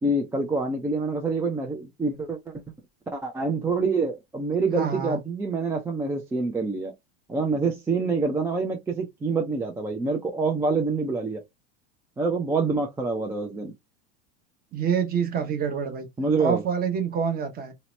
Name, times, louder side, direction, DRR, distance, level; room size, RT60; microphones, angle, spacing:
voice 1, 0.0-2.5 3.1-6.9 7.3-11.4 12.2-13.7 16.2-16.6, right 3 dB, 10° right, 0.3 m, -26 dB
voice 2, 4.8-5.2 14.7-16.1 16.4-17.7, right 7 dB, 30° right, 0.7 m, -26 dB
2.8 x 2.0 x 3.1 m
hypercardioid pair, 105°, 32 cm